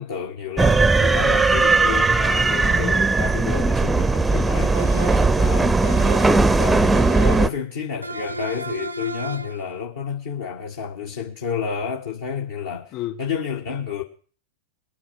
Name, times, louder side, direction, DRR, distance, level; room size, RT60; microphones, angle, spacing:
voice 1, 0.0-4.7 5.4-5.8 6.6-7.0 7.2-12.9 13.2-14.0, left 7 dB, 65° left, 2.0 m, -30 dB
sound 1, 0.6-7.5, right 3 dB, 10° right, 0.6 m, -18 dB
voice 2, 4.3-6.9 12.9-13.2, left 14 dB, 45° left, 3.5 m, -36 dB
sound 2, 4.7-5.4 5.8-6.5 6.9-7.6 8.0-9.7, right 2 dB, 85° right, 0.7 m, -33 dB
21.5 x 10.0 x 5.9 m
figure-of-eight pair, 90°, 0 cm